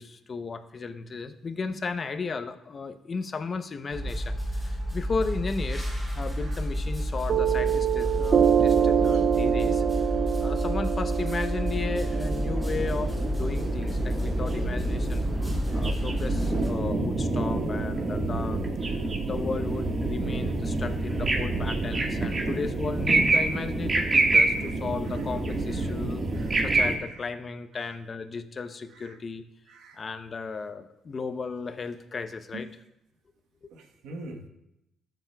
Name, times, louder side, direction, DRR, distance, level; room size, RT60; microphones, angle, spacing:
voice 1, 0.0-15.2 15.7-19.0 19.3-29.4 29.9-32.7 33.6-33.7, left 4 dB, 40° left, 10 dB, 0.7 m, -35 dB
sound 1, 3.9-16.7, equal, 5° right, 2.9 m, -30 dB
Piano, 7.3-14.3, right 8 dB, 55° right, 0.3 m, -26 dB
sound 2, 11.6-27.0, right 2 dB, 35° right, 1.5 m, -27 dB
voice 2, 26.3-26.6 27.1-27.2 27.7-27.9 28.9-29.2 29.7-30.0 32.5-32.7 33.7-34.5, right 2 dB, 85° right, 3 dB, 1.2 m, -45 dB
13.5 x 7.0 x 2.3 m, 0.84 s
cardioid pair, 90°, 0 cm